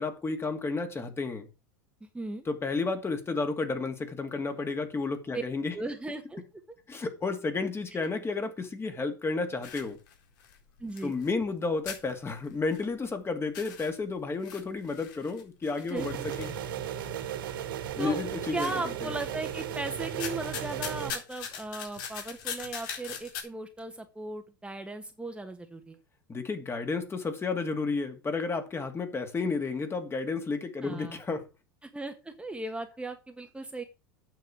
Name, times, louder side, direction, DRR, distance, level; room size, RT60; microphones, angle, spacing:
voice 1, 0.0-1.5 2.5-5.8 6.9-10.0 11.0-16.6 17.9-19.1 26.3-31.5, left 4 dB, 20° left, 2.4 m, -32 dB
voice 2, 2.0-2.4 5.3-5.4 5.7-6.4 10.8-11.1 15.9-16.2 18.0-18.2 18.5-26.0 30.8-31.2 31.8-33.8, right 2 dB, 10° right, 1.6 m, -37 dB
sound 1, 9.6-11.6 11.8-13.1 13.4-17.2 17.7-18.2 18.6-19.8 20.1-23.4, left 7 dB, 70° left, 4.1 m, -41 dB
sound 2, 16.0-21.1, right 10 dB, 75° right, 2.9 m, -35 dB
9.3 x 6.6 x 6.2 m
hypercardioid pair, 90°, 11 cm